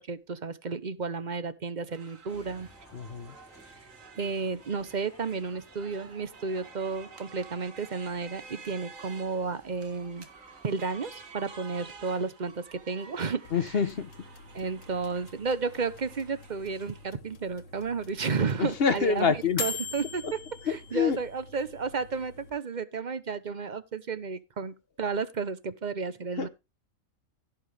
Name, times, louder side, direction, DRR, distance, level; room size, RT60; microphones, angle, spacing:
voice 1, 0.0-2.7 4.2-10.3 10.6-13.8 14.5-20.4 20.7-26.5, right 5 dB, 40° right, 0.9 m, -32 dB
sound 1, 1.9-17.1, right 5 dB, 75° right, 1.9 m, -51 dB
sound 2, 2.3-12.2, equal, 10° left, 4.5 m, -57 dB
voice 2, 2.9-3.3 13.5-14.1 18.6-19.6 20.7-21.2 26.4-26.5, left 6 dB, 50° left, 1.1 m, -26 dB
sound 3, 13.4-22.5, left 5 dB, 65° left, 1.5 m, -43 dB
16.5 x 5.9 x 3.4 m
omnidirectional pair, 1.4 m